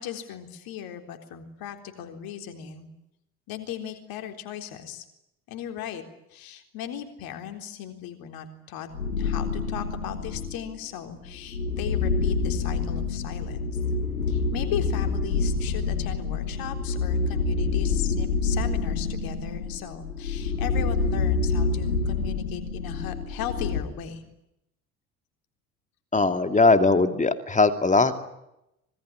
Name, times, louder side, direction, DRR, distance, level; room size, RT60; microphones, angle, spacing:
voice 1, 0.0-2.9 3.5-5.0 5.5-6.0 6.3-8.9 9.2-13.8 14.3-24.2, left 9 dB, 55° left, 6 dB, 3.9 m, -37 dB
sound 1, 8.9-10.7 11.3-23.8, left 4 dB, 85° left, 2.1 m, -27 dB
voice 2, 26.1-28.2, left 3 dB, 15° left, 9 dB, 2.6 m, -20 dB
25.5 x 22.0 x 9.9 m, 0.86 s
figure-of-eight pair, 55°, 42 cm